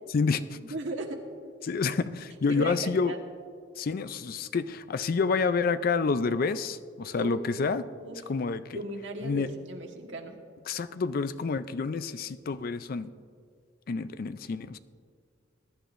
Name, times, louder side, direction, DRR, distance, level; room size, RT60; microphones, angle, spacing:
voice 1, 0.5-1.2 2.5-3.2 7.2-7.4 8.0-8.2 8.7-10.3, right 1 dB, 75° right, 1 dB, 1.4 m, -36 dB
voice 2, 1.6-3.1 3.8-7.8 8.3-8.7 9.2-9.5 10.7-13.1 13.9-14.8, left 4 dB, 50° left, 13 dB, 0.4 m, -28 dB
21.5 x 11.0 x 2.6 m, 2.2 s
head